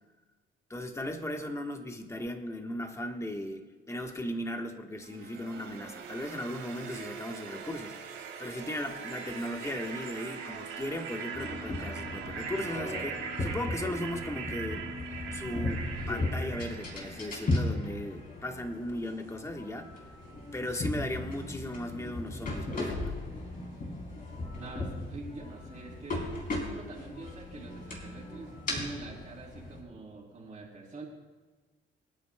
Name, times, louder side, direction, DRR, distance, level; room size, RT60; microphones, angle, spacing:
voice 1, 0.7-8.0 8.4-14.9 15.3-19.9 20.5-23.2, left 1 dB, 15° left, 4 dB, 1.3 m, -37 dB
sound 1, 5.0-17.9, right 5 dB, 70° right, 2.1 m, -41 dB
sound 2, 11.3-29.8, left 2 dB, 40° left, 4.0 m, -37 dB
voice 2, 24.5-26.2 26.5-31.0, right 3 dB, 35° right, -8 dB, 3.2 m, -45 dB
26.0 x 9.6 x 2.3 m, 1.3 s
cardioid pair, 95°, 21 cm